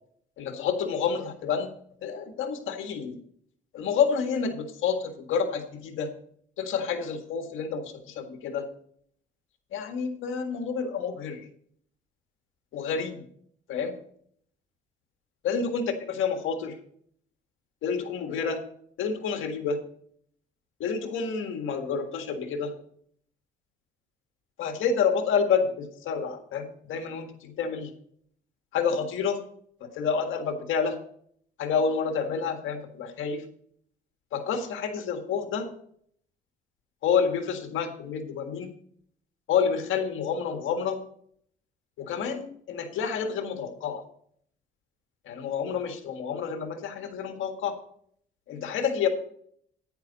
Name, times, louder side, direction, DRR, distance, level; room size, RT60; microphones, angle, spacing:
voice 1, 0.4-1.7 2.0-3.2 3.7-6.1 6.6-8.7 9.7-11.4 12.7-13.2 13.7-14.0 15.4-16.7 17.8-18.6 19.0-19.8 20.8-22.7 24.6-27.9 28.7-29.4 29.8-31.0 31.6-33.4 34.3-35.7 37.0-38.7 39.5-41.0 42.0-44.0 45.3-47.8 48.5-49.1, left 6 dB, 80° left, 6 dB, 1.7 m, -29 dB
10.5 x 9.9 x 4.1 m, 0.62 s
cardioid pair, 90°, 20 cm